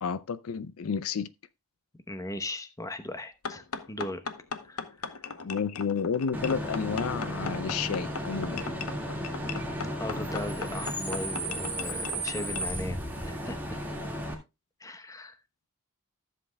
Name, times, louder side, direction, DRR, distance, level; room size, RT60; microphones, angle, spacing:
voice 1, 0.0-1.3 5.4-8.6, left 6 dB, 70° left, 0.4 m, -31 dB
voice 2, 2.1-4.2 4.6-5.3 10.0-13.8 14.8-15.4, left 1 dB, 15° left, 0.8 m, -38 dB
sound 1, 3.4-12.7, left 5 dB, 90° left, 0.9 m, -38 dB
Bus / Idling / Screech, 6.3-14.3, equal, 10° right, 1.8 m, -34 dB
14.5 x 7.7 x 2.2 m
head